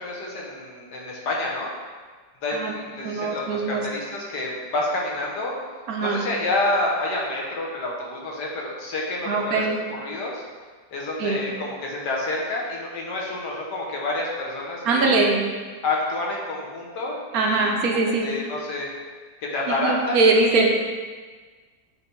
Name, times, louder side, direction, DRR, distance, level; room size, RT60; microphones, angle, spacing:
voice 1, 0.0-1.7 2.4-5.6 6.0-9.7 10.0-10.4 10.9-15.2 15.8-18.9 19.4-20.7, left 2 dB, 65° left, -3 dB, 1.6 m, -28 dB
voice 2, 3.0-3.8 5.9-6.3 9.3-9.8 11.2-11.4 14.8-15.5 17.3-18.3 19.7-20.7, right 3 dB, 60° right, 1 dB, 1.1 m, -22 dB
8.2 x 3.5 x 4.5 m, 1.5 s
omnidirectional pair, 2.0 m